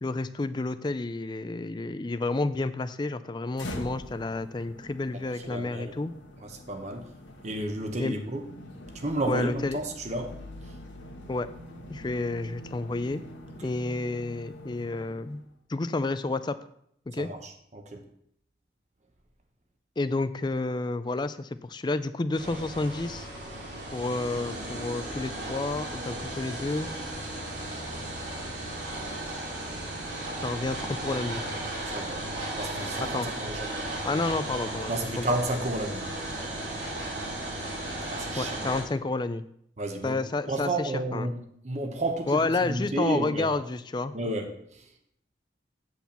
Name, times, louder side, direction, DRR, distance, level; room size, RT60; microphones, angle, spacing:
voice 1, 0.0-6.1 8.0-8.2 9.3-9.8 11.3-11.5 11.9-13.2 13.6-15.4 15.7-16.6 17.1-17.3 20.0-23.3 23.9-26.9 30.4-31.4 33.1-33.3 34.0-35.2 38.4-39.4 40.0-41.3 42.3-44.1, left 2 dB, 25° left, 13 dB, 0.4 m, -30 dB
sound 1, 3.5-15.5, equal, 90° left, 1.3 m, -44 dB
voice 2, 5.1-5.9 6.4-7.1 7.4-8.4 8.9-10.3 10.7-10.8 13.6-13.7 17.2-18.1 31.9-32.2 32.6-33.9 34.9-36.1 38.1-38.6 39.8-40.2 40.5-43.6 44.1-44.9, right 1 dB, 40° right, 5 dB, 1.1 m, -32 dB
sound 2, 22.3-38.8, right 1 dB, 75° right, 2.4 m, -35 dB
8.0 x 4.4 x 6.9 m, 0.70 s
head